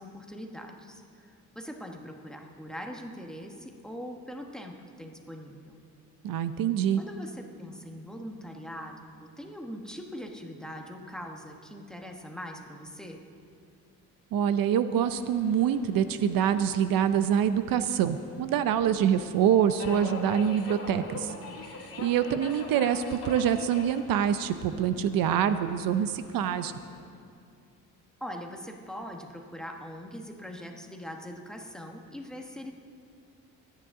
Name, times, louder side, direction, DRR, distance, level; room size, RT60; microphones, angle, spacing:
voice 1, 0.0-5.8 7.0-13.2 28.2-32.7, equal, ahead, 2 dB, 1.1 m, -42 dB
voice 2, 6.2-7.0 14.3-21.3 22.0-26.8, right 9 dB, 75° right, 11 dB, 0.7 m, -25 dB
Subway metro underground, 15.0-27.0, left 3 dB, 45° left, 2.3 m, -44 dB
24.0 x 9.8 x 3.7 m, 2.3 s
cardioid pair, 140°, 35 cm